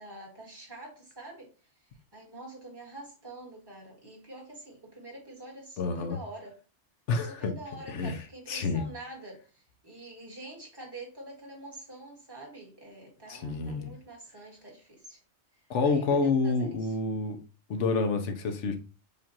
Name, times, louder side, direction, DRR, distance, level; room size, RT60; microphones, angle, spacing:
voice 1, 0.0-1.5 2.1-6.5 7.1-15.2 15.8-16.9, right 2 dB, 20° right, 1.6 m, -46 dB
voice 2, 5.8-6.2 7.1-7.5 7.9-8.2 8.5-8.8 13.3-13.9 15.7-17.4 17.7-18.8, left 4 dB, 85° left, 1.1 m, -28 dB
6.9 x 2.5 x 2.8 m
omnidirectional pair, 1.2 m